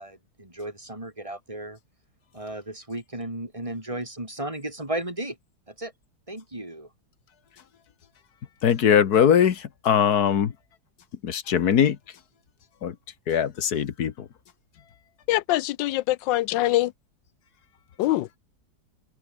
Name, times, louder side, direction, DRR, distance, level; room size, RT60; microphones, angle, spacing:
voice 1, 0.0-1.8 2.3-5.4 5.7-5.9 6.3-6.9, right 1 dB, 15° right, 4.6 m, -34 dB
voice 2, 8.6-10.5 11.2-12.0 12.8-12.9 13.3-14.3, left 8 dB, 60° left, 1.7 m, -21 dB
voice 3, 15.3-16.9 18.0-18.3, left 16 dB, 90° left, 1.3 m, -23 dB
open air
omnidirectional pair, 1.9 m